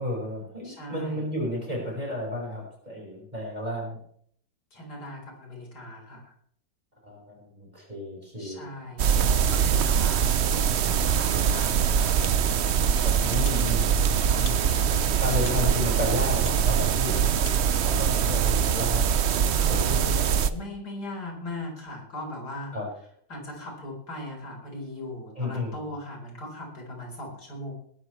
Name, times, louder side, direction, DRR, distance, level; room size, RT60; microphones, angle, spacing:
voice 1, 0.0-4.0 7.0-8.6 13.0-13.9 14.3-14.7 15.2-17.4 17.8-19.0 19.7-20.5 22.7-22.9 25.4-25.8, left 1 dB, 20° right, -2 dB, 5.6 m, -32 dB
voice 2, 0.6-1.3 4.7-6.3 8.4-12.1 12.9-13.4 14.2-14.5 19.5-22.8 23.3-27.7, left 1 dB, 60° left, 0 dB, 4.8 m, -39 dB
sound 1, 9.0-20.5, right 8 dB, 65° right, 0.6 m, -23 dB
sound 2, 13.4-13.7 14.4-14.6 15.4-15.6 16.4-16.6 17.4-17.6, left 4 dB, 35° left, 1.2 m, -43 dB
20.0 x 12.5 x 3.2 m, 0.63 s
omnidirectional pair, 1.9 m